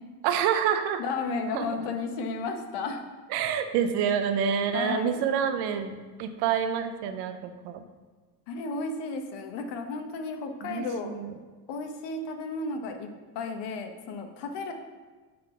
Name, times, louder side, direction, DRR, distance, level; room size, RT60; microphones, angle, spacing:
voice 1, 0.2-1.0 1.5-1.7 3.3-7.8 10.6-11.3, right 8 dB, 70° right, 9 dB, 0.7 m, -27 dB
voice 2, 1.0-3.0 4.7-5.2 8.5-11.1 11.7-13.1 13.3-14.7, left 3 dB, 70° left, 5 dB, 1.0 m, -33 dB
6.6 x 3.9 x 5.6 m, 1.4 s
cardioid pair, 155°, 42 cm